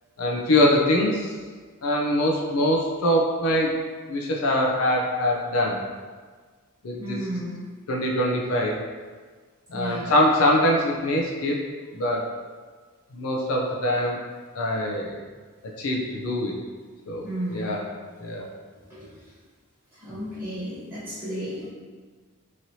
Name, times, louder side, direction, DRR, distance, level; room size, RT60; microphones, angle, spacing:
voice 1, 0.2-1.3 1.8-3.7 4.1-5.8 6.8-7.2 7.9-8.8 9.7-11.6 11.9-12.3 13.1-14.2 14.5-15.1 15.8-16.5 17.1-17.8 18.2-18.5, left 1 dB, 70° left, -1 dB, 0.4 m, -23 dB
voice 2, 7.0-7.6 9.7-10.1 17.2-17.7 18.9-19.1 19.9-21.7, right 1 dB, 15° right, -13 dB, 1.0 m, -33 dB
3.0 x 2.7 x 2.7 m, 1.5 s
head